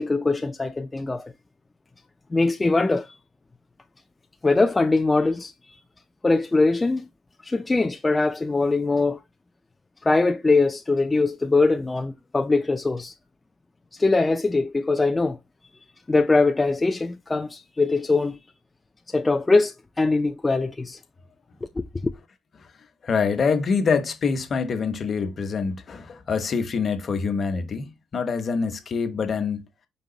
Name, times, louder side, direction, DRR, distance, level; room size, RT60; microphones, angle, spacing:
voice 1, 0.0-1.3 2.3-3.2 4.4-5.8 6.2-7.1 7.4-9.2 10.0-13.1 13.9-15.4 16.1-18.4 19.1-21.0 21.8-22.1, left 3 dB, 20° left, 0.4 m, -22 dB
voice 2, 23.0-29.7, left 5 dB, 50° left, 1.1 m, -25 dB
5.3 x 2.5 x 3.9 m
cardioid pair, 90°, 0 cm